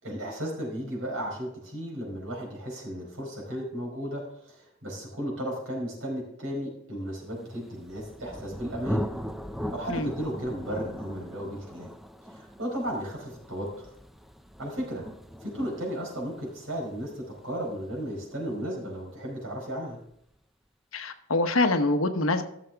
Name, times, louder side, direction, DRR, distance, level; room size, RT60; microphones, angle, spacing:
voice 1, 0.0-9.0 9.7-11.9 12.2-13.9 14.6-15.0 15.4-20.0, equal, 75° right, -2 dB, 4.5 m, -34 dB
Thunder, 7.5-19.1, equal, ahead, 0.4 m, -39 dB
voice 2, 20.9-22.4, left 2 dB, 75° left, 8 dB, 1.0 m, -25 dB
15.0 x 7.0 x 3.4 m, 0.73 s
head